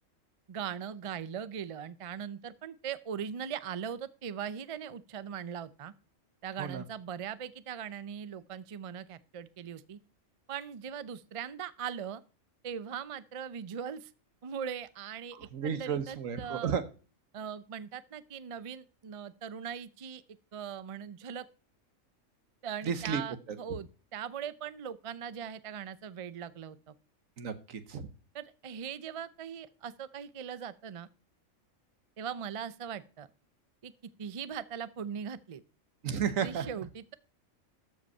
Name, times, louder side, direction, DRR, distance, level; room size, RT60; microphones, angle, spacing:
voice 1, 0.5-5.9 6.4-10.0 10.5-12.2 12.6-14.1 14.4-15.4 15.6-16.8 17.3-20.2 20.5-21.5 22.6-26.9 28.3-31.1 32.2-33.3 33.8-33.9 34.2-35.6 36.4-37.1, right 8 dB, 45° right, 16 dB, 0.4 m, -40 dB
voice 2, 15.5-16.8 22.8-23.2 27.4-28.1 36.0-36.7, right 7 dB, 85° right, 11 dB, 1.5 m, -32 dB
13.5 x 5.3 x 5.4 m, 0.37 s
omnidirectional pair, 1.4 m